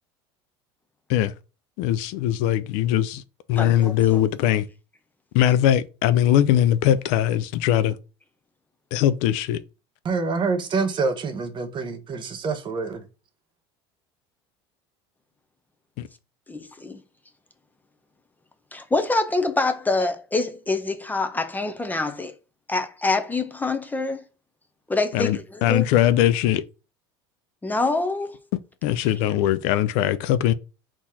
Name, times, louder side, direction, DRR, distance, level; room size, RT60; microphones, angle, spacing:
voice 1, 1.8-3.2 3.5-4.7 5.3-8.0 8.9-9.6 16.0-16.1 25.1-26.6 28.8-30.5, left 12 dB, 65° left, 0.4 m, -21 dB
voice 2, 3.6-4.2 16.5-17.0 18.7-22.3 22.7-24.2 24.9-25.9 27.6-28.4, left 3 dB, 15° left, 0.6 m, -26 dB
voice 3, 10.0-13.0, right 4 dB, 35° right, 1.1 m, -26 dB
4.2 x 2.9 x 3.6 m
hypercardioid pair, 85°, 13 cm